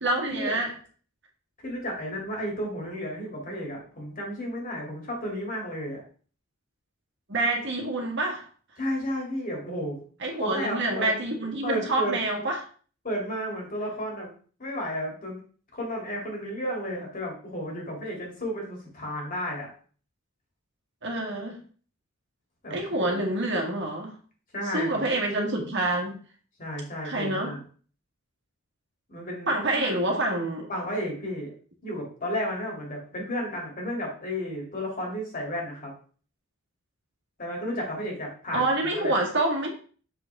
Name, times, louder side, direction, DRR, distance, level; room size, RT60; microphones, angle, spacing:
voice 1, 0.0-0.7 7.3-8.5 10.2-12.6 21.0-21.6 22.7-24.1 24.7-26.2 27.0-27.5 29.5-30.7 38.5-39.7, right 2 dB, 55° right, 1 dB, 1.7 m, -27 dB
voice 2, 1.6-6.0 8.8-10.0 10.4-11.1 11.6-12.2 13.0-14.3 14.6-15.4 15.7-19.7 22.6-22.8 23.1-23.2 24.5-25.0 26.6-27.6 29.1-29.9 30.7-31.5 31.8-35.9 37.4-39.1, equal, 40° left, -1 dB, 2.9 m, -32 dB
6.8 x 6.2 x 3.5 m, 0.42 s
head